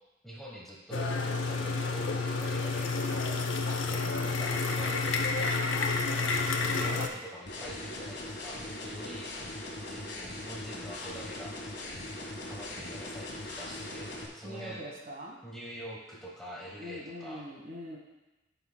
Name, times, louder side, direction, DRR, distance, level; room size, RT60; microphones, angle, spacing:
voice 1, 0.2-5.6 6.0-9.6 9.9-11.5 12.5-14.8 15.4-17.4, equal, ahead, -5 dB, 1.2 m, -45 dB
sound 1, 0.9-7.1, left 3 dB, 80° left, 0.7 m, -30 dB
voice 2, 4.0-4.4 14.4-15.4 16.8-18.0, equal, 45° right, -1 dB, 1.5 m, -43 dB
sound 2, 7.5-14.3, left 1 dB, 55° left, 1.6 m, -40 dB
13.5 x 5.7 x 2.3 m, 1.1 s
head